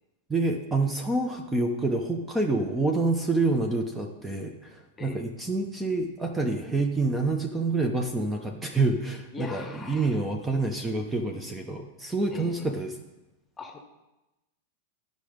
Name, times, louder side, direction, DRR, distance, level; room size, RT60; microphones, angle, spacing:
voice 1, 0.3-13.0, right 2 dB, 10° right, 3 dB, 0.9 m, -27 dB
voice 2, 9.3-10.2 12.3-12.7 13.6-13.9, left 4 dB, 20° left, 5 dB, 1.2 m, -41 dB
10.0 x 5.3 x 5.1 m, 1.0 s
hypercardioid pair, 95°, 0 cm